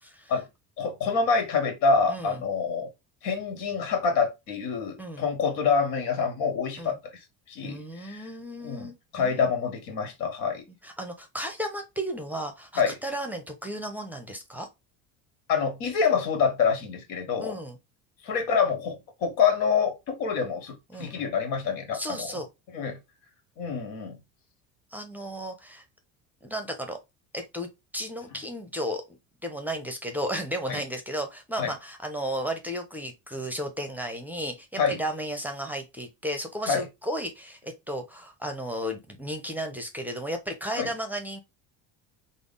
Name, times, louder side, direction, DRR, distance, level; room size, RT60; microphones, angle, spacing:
voice 1, 0.0-0.3 2.1-2.4 5.0-5.3 6.8-7.0 7.6-9.5 10.8-14.7 17.4-17.8 20.9-21.1 21.9-22.5 24.9-25.8 26.4-27.0 27.3-27.7 27.9-29.0 29.4-41.4, equal, 5° right, 0.6 m, -34 dB
voice 2, 0.8-2.9 3.2-7.0 7.5-8.2 8.6-10.6 12.8-12.9 15.5-17.5 18.2-22.3 22.7-23.0 23.6-24.2 30.7-30.8 31.6-31.7 34.8-35.0 36.6-36.8 40.8-40.9, left 5 dB, 80° left, 1.2 m, -26 dB
3.5 x 2.0 x 3.7 m
supercardioid pair, 100°, 36 cm